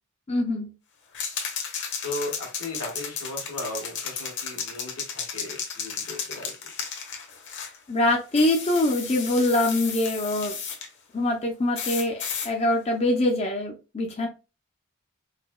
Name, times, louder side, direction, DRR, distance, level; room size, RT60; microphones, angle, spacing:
voice 1, 0.3-0.7 7.9-10.6 11.1-14.3, left 1 dB, 30° left, 2 dB, 0.5 m, -24 dB
sound 1, 1.1-7.8 8.3-10.9 11.7-12.5, left 6 dB, 55° left, 0.9 m, -34 dB
voice 2, 2.0-6.5, left 2 dB, 85° left, 1 dB, 1.5 m, -36 dB
4.8 x 2.2 x 2.2 m, 0.30 s
head